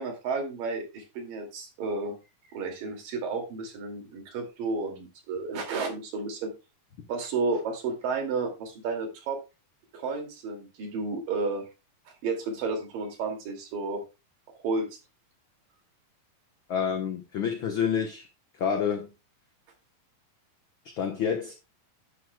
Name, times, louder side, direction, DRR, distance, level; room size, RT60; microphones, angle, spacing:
voice 1, 0.0-2.2 2.5-6.5 7.1-9.4 9.9-11.7 12.2-14.0 14.6-14.9, right 4 dB, 90° right, 4.1 m, -32 dB
voice 2, 16.7-18.3 18.5-19.1 20.9-21.5, left 7 dB, 60° left, 1.3 m, -28 dB
11.5 x 10.0 x 2.3 m
omnidirectional pair, 3.8 m